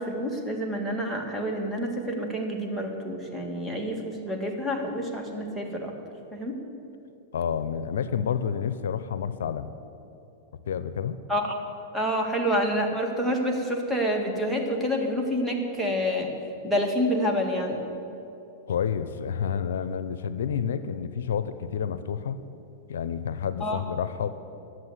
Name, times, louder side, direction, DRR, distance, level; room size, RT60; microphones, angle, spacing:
voice 1, 0.0-5.9 6.3-6.6 11.3-11.6 11.9-16.3 16.6-17.8 23.6-23.8, equal, 5° right, 0 dB, 1.7 m, -28 dB
voice 2, 7.3-9.7 10.7-11.2 18.7-22.4 22.9-24.3, left 7 dB, 80° left, 13 dB, 0.6 m, -29 dB
12.0 x 7.7 x 8.1 m, 2.8 s
hypercardioid pair, 125°, 0 cm